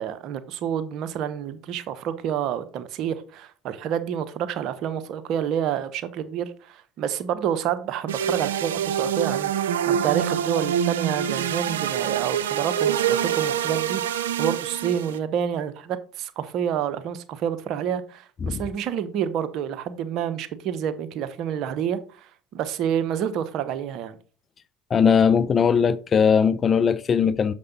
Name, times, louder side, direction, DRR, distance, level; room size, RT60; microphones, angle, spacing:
voice 1, 0.0-24.1, right 9 dB, 60° right, 0.8 m, -28 dB
sound 1, 8.1-15.2, right 9 dB, 90° right, 0.4 m, -25 dB
voice 2, 24.9-27.5, left 6 dB, 40° left, 0.5 m, -19 dB
6.8 x 5.3 x 4.0 m
hypercardioid pair, 75°, 0 cm